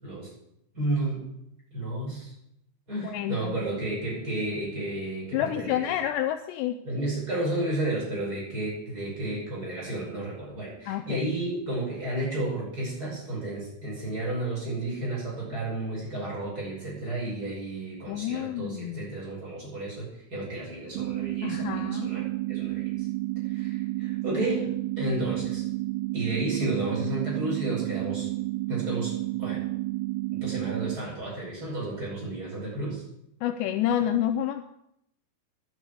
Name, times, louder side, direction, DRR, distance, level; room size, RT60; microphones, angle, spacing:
voice 1, 0.7-1.3 1.7-2.3 2.9-5.8 6.8-22.8 23.5-25.6 26.1-28.3 28.7-29.7 30.3-33.0, right 1 dB, 20° right, -5 dB, 5.7 m, -32 dB
voice 2, 3.0-3.6 5.3-6.8 10.9-11.3 18.1-19.1 21.4-22.1 33.4-34.6, left 11 dB, 90° left, 8 dB, 2.4 m, -29 dB
sound 1, 21.0-31.0, right 20 dB, 85° right, 3.3 m, -31 dB
10.5 x 9.6 x 8.3 m, 0.78 s
omnidirectional pair, 5.8 m